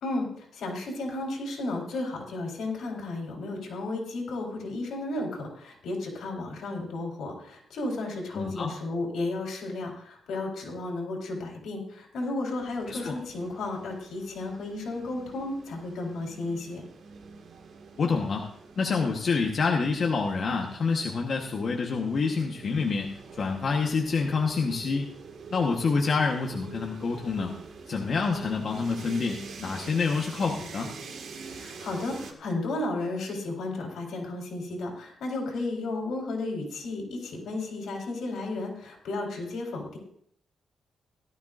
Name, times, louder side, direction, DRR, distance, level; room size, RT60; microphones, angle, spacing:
voice 1, 0.0-16.8 31.5-40.0, left 2 dB, 85° left, 0 dB, 4.1 m, -33 dB
voice 2, 8.3-8.7 12.9-13.2 18.0-18.5 18.8-23.1 23.4-25.1 25.5-27.5 27.9-30.9, left 4 dB, 45° left, 1 dB, 1.2 m, -27 dB
sound 1, 12.6-32.3, right 4 dB, 65° right, 1.8 m, -46 dB
17.5 x 12.5 x 2.5 m, 0.68 s
wide cardioid pair, 150°, 0 cm